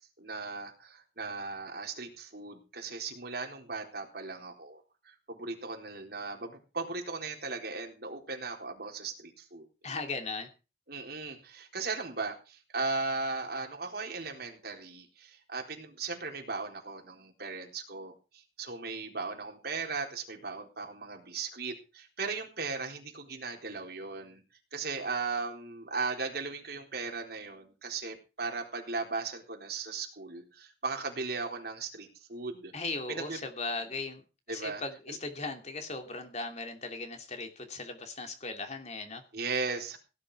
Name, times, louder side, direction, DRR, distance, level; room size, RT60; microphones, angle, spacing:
voice 1, 0.2-9.6 10.9-24.4 24.7-32.7 33.1-33.4 34.5-34.8 35.1-35.2 39.3-40.0, right 4 dB, 60° right, 2 dB, 3.9 m, -37 dB
voice 2, 9.8-10.5 32.7-34.2 34.5-39.2, left 3 dB, 40° left, 5 dB, 2.8 m, -38 dB
17.5 x 10.0 x 4.8 m, 0.32 s
head